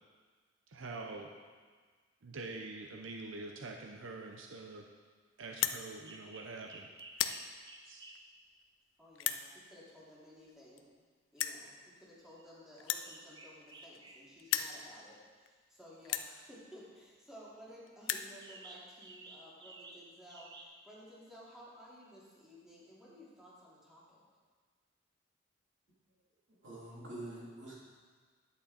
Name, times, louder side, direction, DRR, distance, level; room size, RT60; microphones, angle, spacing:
voice 1, 0.7-1.3 2.2-4.9 5.4-6.9 7.8-8.1, right 3 dB, 85° right, 3 dB, 0.7 m, -45 dB
sound 1, 5.5-5.8 6.5-6.7 7.0-7.4 8.2-8.3 9.2-9.4 10.5-10.6 10.8-10.9 11.4-11.6 12.8-14.1 14.4-14.8 15.5-15.6 16.0-16.3 17.2-17.3 17.5-17.6 17.9-18.3, left 11 dB, 75° left, 0.5 m, -35 dB
sound 2, 6.1-8.4 11.6-11.7 12.3-12.5 12.8-14.8 18.4-20.6, right 2 dB, 25° right, 0.8 m, -54 dB
voice 2, 9.0-10.8 11.3-24.2, equal, 5° right, -8 dB, 2.7 m, -55 dB
voice 3, 26.5-27.7, right 1 dB, 65° right, -6 dB, 3.1 m, -46 dB
11.0 x 8.5 x 4.2 m, 1.5 s
head